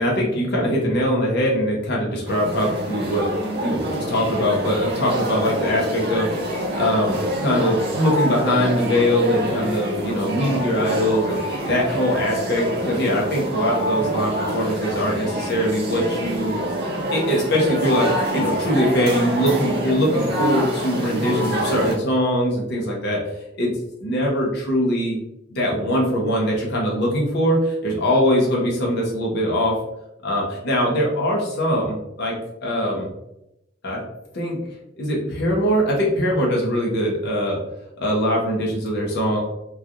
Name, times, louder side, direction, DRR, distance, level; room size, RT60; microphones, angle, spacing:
voice 1, 0.0-3.3 3.6-16.5 17.1-23.2 23.5-23.7 24.0-25.2 25.5-29.8 30.2-32.3 32.6-33.1 33.8-34.0 34.3-34.6 35.0-37.6 38.0-39.4, equal, 60° left, -3 dB, 0.8 m, -22 dB
sound 1, 2.3-22.0, equal, 55° right, 0.5 m, -26 dB
3.1 x 2.4 x 2.4 m, 0.86 s
head